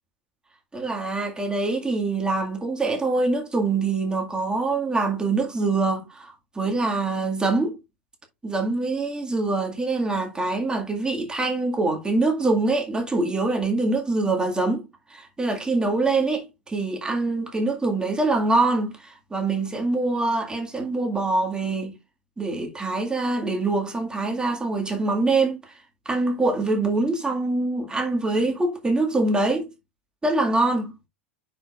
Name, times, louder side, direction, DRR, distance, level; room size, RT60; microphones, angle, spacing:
voice 1, 0.7-7.8 8.4-21.9 22.4-25.8 26.1-29.7 30.2-30.9, right 3 dB, 10° right, 1.9 m, -24 dB
9.8 x 4.9 x 2.4 m
hypercardioid pair, 90°, 7 cm